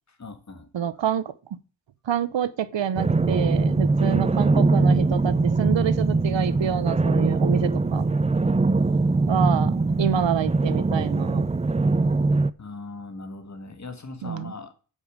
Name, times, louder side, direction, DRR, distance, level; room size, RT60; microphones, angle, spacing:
voice 1, 0.1-0.7 12.6-14.7, left 3 dB, 35° left, 2.1 m, -39 dB
voice 2, 0.7-1.6 2.0-8.0 9.3-11.5 14.2-14.5, right 9 dB, 60° right, 1.0 m, -27 dB
sound 1, 3.0-12.5, right 3 dB, 15° right, 0.5 m, -22 dB
9.3 x 6.9 x 8.8 m
cardioid pair, 85°, 50 cm